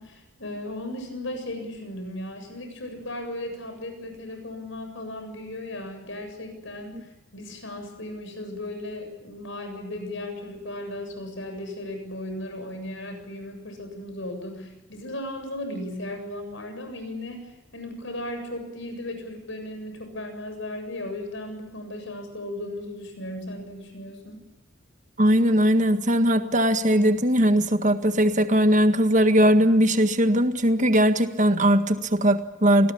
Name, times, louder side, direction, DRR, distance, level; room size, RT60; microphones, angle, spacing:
voice 1, 0.0-24.5, left 1 dB, 60° left, 6 dB, 7.8 m, -36 dB
voice 2, 25.2-32.9, equal, 35° right, 8 dB, 1.7 m, -20 dB
26.5 x 20.0 x 8.7 m, 0.97 s
head